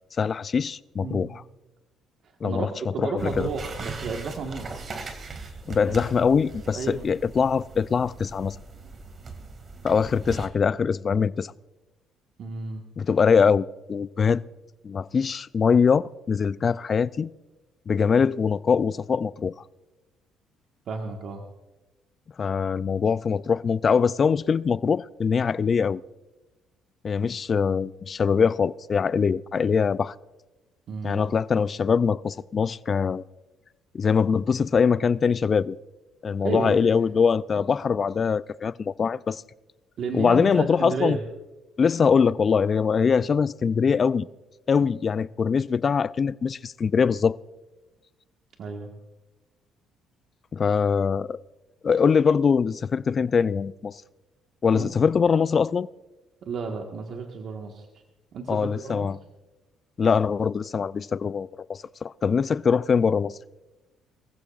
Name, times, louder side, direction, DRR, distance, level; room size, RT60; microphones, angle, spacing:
voice 1, 0.2-1.4 2.4-2.7 3.0-3.5 5.7-8.6 9.8-11.5 13.0-14.4 14.8-17.3 17.9-19.5 22.4-26.0 27.0-30.1 31.0-33.2 33.9-35.8 36.2-39.4 40.1-41.2 41.8-44.3 44.7-47.4 50.5-51.4 51.8-54.0 54.6-55.9 58.5-59.2 60.0-63.4, left 6 dB, 40° left, 0.4 m, -23 dB
voice 2, 2.9-4.7 5.8-5.9 6.7-7.1 12.4-12.8 20.9-21.4 30.9-31.2 36.4-36.8 40.0-41.2 44.8-44.9 48.6-48.9 54.7-54.9 56.4-57.9 58.3-59.1, right 4 dB, 60° right, 1.6 m, -32 dB
sound 1, 3.2-10.5, right 4 dB, 45° right, 2.2 m, -39 dB
23.0 x 15.0 x 2.5 m
supercardioid pair, 75°, 0 cm